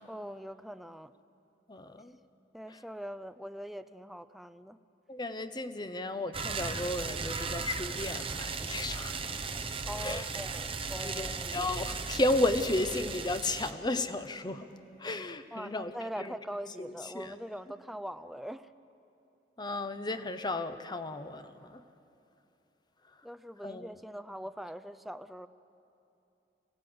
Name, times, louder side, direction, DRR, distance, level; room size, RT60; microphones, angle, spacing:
voice 1, 0.0-1.1 2.5-4.8 9.8-11.7 15.5-18.7 23.2-25.5, equal, ahead, 11 dB, 0.4 m, -42 dB
voice 2, 1.7-2.2 2.7-2.8 5.1-9.2 10.0-10.4 11.0-14.7 15.0-16.3 16.8-17.3 19.6-21.8 23.6-24.0, left 2 dB, 25° left, 10 dB, 0.8 m, -34 dB
sound 1, 6.3-13.7, right 4 dB, 30° right, 1.0 m, -36 dB
25.0 x 16.5 x 7.9 m, 2.8 s
head